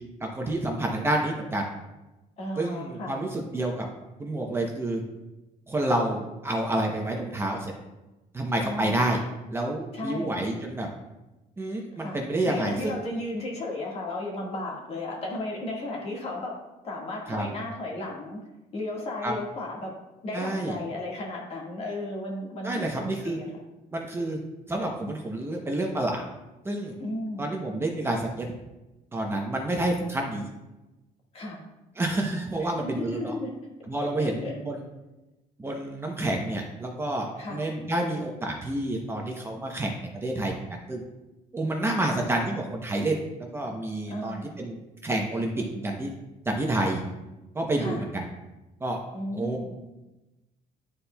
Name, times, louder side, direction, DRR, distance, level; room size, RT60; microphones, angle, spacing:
voice 1, 0.2-1.6 2.6-3.9 4.2-5.0 5.7-7.7 8.3-9.2 9.5-10.9 11.6-13.0 17.3-17.5 19.2-19.3 20.3-20.8 22.6-23.4 23.9-24.4 24.7-26.2 26.6-27.0 27.4-28.5 29.1-30.5 32.0-33.3 33.9-34.8 35.6-40.6 40.9-41.0 41.5-43.2 43.5-44.7 45.0-46.1 46.5-47.0 47.5-48.2 48.8-49.0 49.3-49.6, right 1 dB, 15° right, 1 dB, 0.7 m, -29 dB
voice 2, 2.4-3.1 8.6-9.1 9.9-10.4 11.9-16.6 16.8-18.4 18.7-19.9 20.2-23.6 27.0-27.5 31.3-31.6 32.6-33.5 34.2-34.5 37.3-37.6 42.0-42.2 44.1-44.6 47.8-48.0 49.1-49.7, left 1 dB, 45° left, -2 dB, 1.6 m, -34 dB
11.0 x 4.2 x 2.2 m, 1.0 s
cardioid pair, 130°, 15 cm